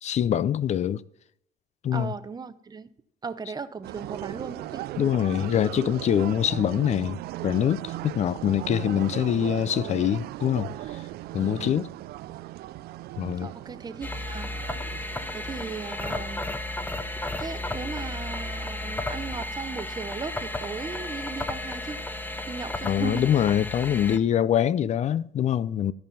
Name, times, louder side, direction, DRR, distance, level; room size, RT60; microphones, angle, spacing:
voice 1, 0.0-1.0 1.8-2.1 5.0-11.0 11.3-11.9 13.2-13.5 22.8-25.9, left 10 dB, 45° left, 0.5 m, -24 dB
voice 2, 1.9-2.9 3.2-4.9 11.6-11.8 13.4-14.5 15.3-16.6 17.4-22.0 22.5-23.3, right 5 dB, 25° right, 0.7 m, -37 dB
sound 1, 3.8-16.7, right 16 dB, 70° right, 0.4 m, -38 dB
sound 2, 14.0-24.2, left 1 dB, 10° left, 0.8 m, -33 dB
13.0 x 5.4 x 5.6 m
cardioid pair, 110°, 17 cm